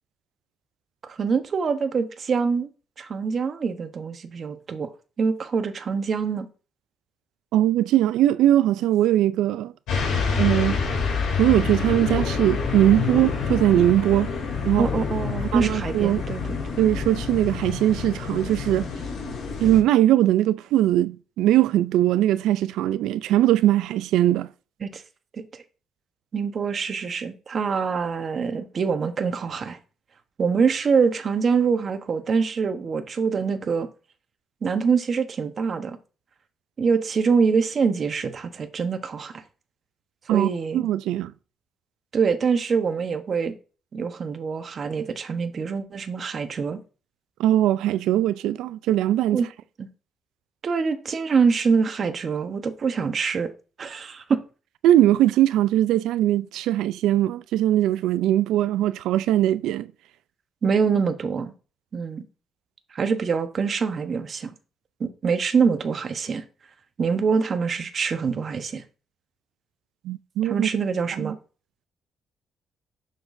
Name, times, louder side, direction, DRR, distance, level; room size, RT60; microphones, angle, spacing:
voice 1, 1.0-2.7 3.0-4.9 5.2-6.5 14.8-16.4 24.8-25.0 25.3-25.6 26.3-29.8 30.4-33.9 34.6-36.0 36.8-39.4 40.3-40.9 42.1-43.5 43.9-46.8 49.3-49.5 49.8-49.9 50.6-53.5 53.8-54.4 60.6-61.5 61.9-62.2 62.9-64.5 65.0-66.4 67.0-68.8 70.4-71.3, right 5 dB, 50° right, 1.0 m, -24 dB
voice 2, 7.5-9.7 10.4-10.8 11.4-14.3 14.6-14.9 15.5-16.2 16.8-18.9 19.6-24.5 40.3-41.3 47.4-49.4 54.8-59.9 70.0-70.7 71.2-71.4, right 13 dB, 90° right, 0.3 m, -20 dB
sound 1, 9.9-19.8, left 5 dB, 85° left, 2.7 m, -27 dB
7.1 x 5.9 x 2.6 m
cardioid pair, 90°, 0 cm